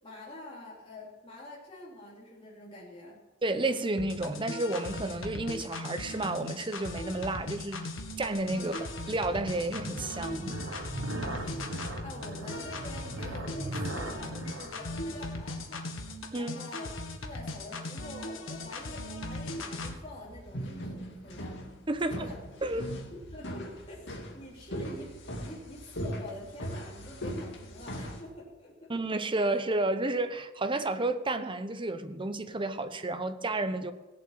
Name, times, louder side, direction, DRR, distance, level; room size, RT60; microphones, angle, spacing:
voice 1, 0.0-3.1 8.5-8.8 11.3-11.8 12.0-15.9 16.3-16.9 17.2-21.5 22.0-22.4 23.1-24.0 24.3-28.9, left 1 dB, 30° left, 3.5 m, -46 dB
voice 2, 3.4-7.9 8.2-10.6 16.3-16.5 21.9-22.3 22.6-22.9 28.9-33.9, right 2 dB, 25° right, 0.9 m, -31 dB
sound 1, 4.0-20.0, left 2 dB, 90° left, 1.7 m, -39 dB
sound 2, 6.6-16.1, right 1 dB, 85° right, 1.9 m, -41 dB
sound 3, 18.5-28.2, equal, 65° left, 2.3 m, -40 dB
17.5 x 7.7 x 7.5 m
head